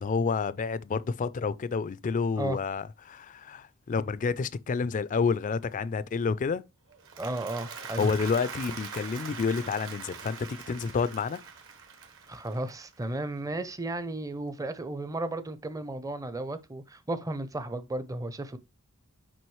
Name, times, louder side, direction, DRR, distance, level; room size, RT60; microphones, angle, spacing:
voice 1, 0.0-6.6 8.0-11.4, left 5 dB, 35° left, 0.3 m, -29 dB
Applause, 6.9-13.2, right 5 dB, 65° right, 1.2 m, -43 dB
voice 2, 7.2-8.1 12.3-18.6, right 2 dB, 15° right, 0.5 m, -34 dB
6.2 x 5.1 x 3.1 m
head